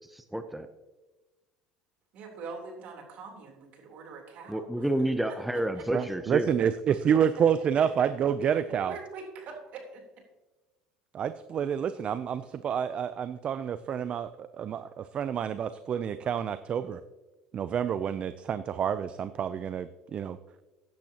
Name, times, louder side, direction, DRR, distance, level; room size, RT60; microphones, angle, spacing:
voice 1, 0.1-0.7 4.5-6.5, right 1 dB, 5° right, 8 dB, 0.7 m, -30 dB
voice 2, 2.1-4.9 5.3-5.4 5.7-5.8 8.0-8.1 8.8-10.0, right 4 dB, 55° right, 1 dB, 3.5 m, -43 dB
voice 3, 5.9-9.0 11.1-17.0 17.5-20.4, right 8 dB, 40° right, 12 dB, 0.5 m, -28 dB
15.0 x 10.5 x 2.9 m, 1.1 s
supercardioid pair, 90°, 3 cm